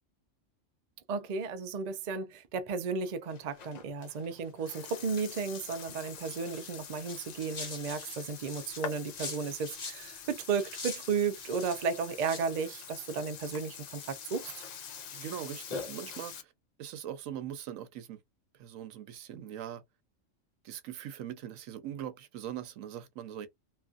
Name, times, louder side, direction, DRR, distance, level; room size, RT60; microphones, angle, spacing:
voice 1, 1.1-14.6, right 5 dB, 55° right, 0.4 m, -34 dB
Burping eructation, 3.3-16.4, left 6 dB, 70° left, 0.4 m, -45 dB
sound 1, 6.2-10.0 10.3-11.8 12.2-12.5, left 3 dB, 40° left, 1.1 m, -44 dB
voice 2, 15.1-16.5 16.8-18.2 18.6-19.8 20.6-23.5, right 10 dB, 85° right, 1.0 m, -41 dB
2.9 x 2.4 x 2.4 m
omnidirectional pair, 1.3 m